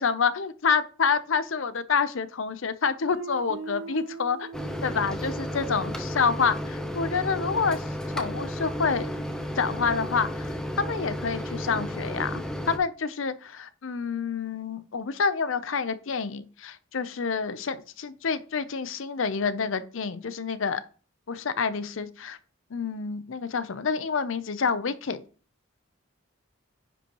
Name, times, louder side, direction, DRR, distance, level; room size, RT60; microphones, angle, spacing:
voice 1, 0.0-4.5 4.8-7.8 8.1-9.1 9.6-20.8 21.3-22.4 22.7-25.2, left 5 dB, 70° left, 14 dB, 0.6 m, -28 dB
Guitar, 3.1-7.8, right 4 dB, 70° right, 0.4 m, -43 dB
Microwave oven, 4.5-12.8, equal, 5° left, 0.7 m, -33 dB
9.8 x 5.4 x 3.0 m, 0.40 s
head